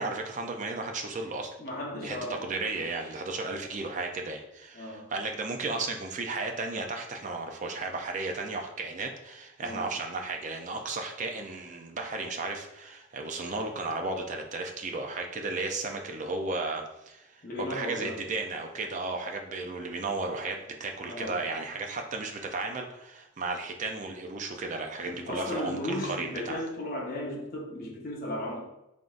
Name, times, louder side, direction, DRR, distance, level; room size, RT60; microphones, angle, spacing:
voice 1, 0.0-1.5 2.0-26.6, right 3 dB, 40° right, 3 dB, 0.5 m, -34 dB
voice 2, 1.6-2.9 4.7-5.1 9.6-9.9 17.4-18.2 21.0-21.5 25.1-28.6, left 1 dB, 45° left, -3 dB, 0.9 m, -36 dB
3.8 x 3.5 x 2.5 m, 0.90 s
head